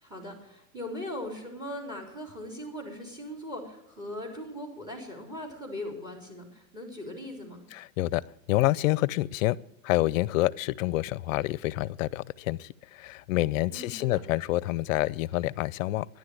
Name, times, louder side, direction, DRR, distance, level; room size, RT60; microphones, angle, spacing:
voice 1, 0.0-7.6 13.7-14.2, left 1 dB, 10° right, 3.6 m, -39 dB
voice 2, 7.7-8.2 8.5-9.6 9.8-16.1, left 17 dB, 60° left, 0.6 m, -27 dB
12.0 x 10.5 x 7.8 m
supercardioid pair, 145°, 44 cm